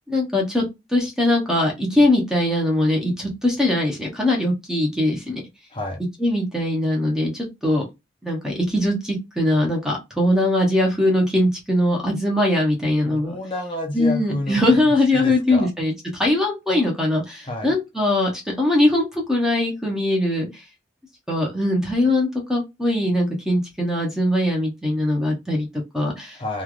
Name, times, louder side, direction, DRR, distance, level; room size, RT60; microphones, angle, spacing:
voice 1, 0.0-5.4 6.2-7.8 8.2-13.3 13.9-20.6 21.3-26.4, left 1 dB, 5° right, 0.8 m, -21 dB
voice 2, 5.7-6.0 13.0-15.7 17.4-17.7 26.4-26.6, left 1 dB, 30° left, 0.7 m, -30 dB
3.2 x 2.4 x 2.4 m
head